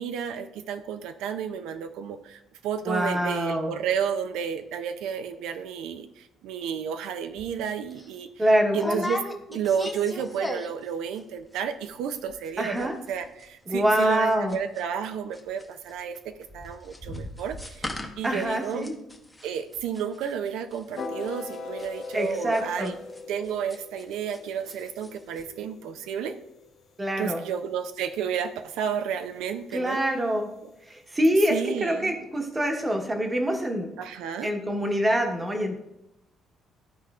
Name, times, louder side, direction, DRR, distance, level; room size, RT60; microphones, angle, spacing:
voice 1, 0.0-8.5 8.7-9.2 9.5-18.9 19.4-23.0 23.3-26.4 27.2-30.0 31.5-32.2 34.0-34.5, right 7 dB, 85° right, 9 dB, 0.4 m, -32 dB
voice 2, 2.8-3.7 8.4-9.0 12.6-12.9 13.7-14.5 18.2-18.9 22.1-22.9 27.0-27.4 29.7-30.5 30.9-33.9 34.4-35.8, equal, 15° right, 3 dB, 1.0 m, -25 dB
sound 1, 7.4-7.5 7.9-8.1 8.7-10.9 11.1-11.6 11.8-11.9 12.1-12.5 12.8-24.4 24.7-25.1 25.4-25.5, left 1 dB, 5° left, 0.7 m, -38 dB
sound 2, 20.9-27.0, left 4 dB, 75° left, 1.6 m, -40 dB
13.0 x 4.3 x 2.3 m, 0.86 s
cardioid pair, 150°, 0 cm